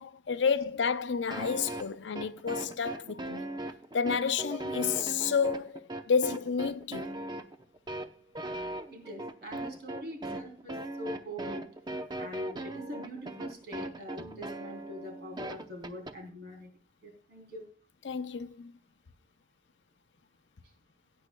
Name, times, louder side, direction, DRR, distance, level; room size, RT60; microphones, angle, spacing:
voice 1, 0.0-3.6 3.9-7.2 18.0-18.7, left 6 dB, 80° left, 0.6 m, -30 dB
sound 1, 1.3-16.1, right 1 dB, 25° right, 0.7 m, -38 dB
voice 2, 8.9-11.7 12.1-16.7 17.0-17.7, equal, 60° right, 3.4 m, -43 dB
17.0 x 9.2 x 2.2 m
head